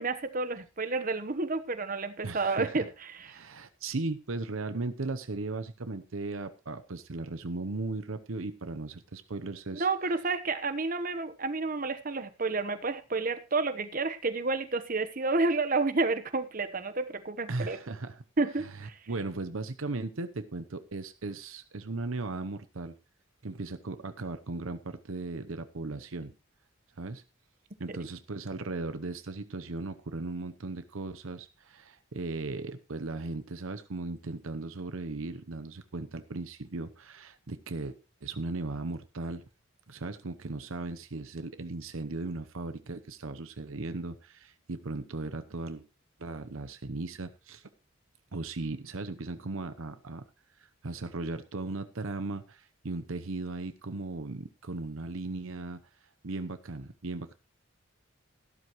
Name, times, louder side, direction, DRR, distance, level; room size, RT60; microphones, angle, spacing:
voice 1, 0.0-3.4 9.7-17.8 18.4-19.1, right 3 dB, 40° right, 11 dB, 1.0 m, -30 dB
voice 2, 2.2-2.8 3.3-9.9 17.5-18.2 19.1-22.9 23.4-26.3 27.0-27.2 27.8-37.9 38.2-39.4 39.9-45.8 46.2-47.7 48.3-50.2 50.6-55.8 56.2-57.3, right 3 dB, 70° right, 10 dB, 0.8 m, -37 dB
13.5 x 12.5 x 3.1 m, 0.30 s
head